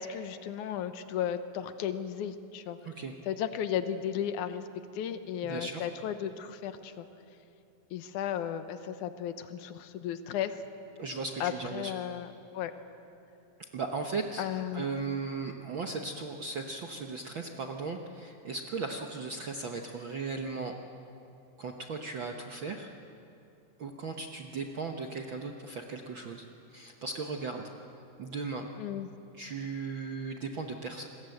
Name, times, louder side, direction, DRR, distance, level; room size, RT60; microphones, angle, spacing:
voice 1, 0.0-2.8 3.3-4.6 5.0-7.1 7.9-10.6 11.4-12.3 12.5-12.7 14.4-14.9 28.8-29.1, left 9 dB, 70° left, 10 dB, 2.4 m, -34 dB
voice 2, 2.8-3.2 5.4-5.8 11.0-11.9 13.6-14.4 14.7-20.7 21.6-22.9 23.8-27.7 28.2-28.7 29.3-31.1, right 4 dB, 65° right, 3 dB, 1.2 m, -37 dB
27.0 x 21.5 x 7.9 m, 2.8 s
omnidirectional pair, 3.9 m